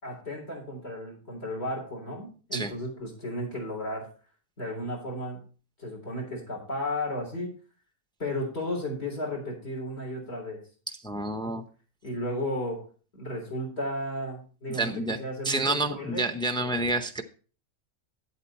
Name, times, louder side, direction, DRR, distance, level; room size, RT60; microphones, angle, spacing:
voice 1, 0.0-4.1 4.6-5.4 5.8-7.5 8.2-10.6 11.4-11.5 12.0-12.8 13.1-14.9 15.2-16.3 16.6-16.9, left 1 dB, 45° left, 0 dB, 4.0 m, -34 dB
voice 2, 11.0-11.6 14.7-15.2 15.4-17.2, right 2 dB, 5° left, 8 dB, 0.4 m, -29 dB
8.9 x 8.2 x 4.2 m, 0.39 s
omnidirectional pair, 1.4 m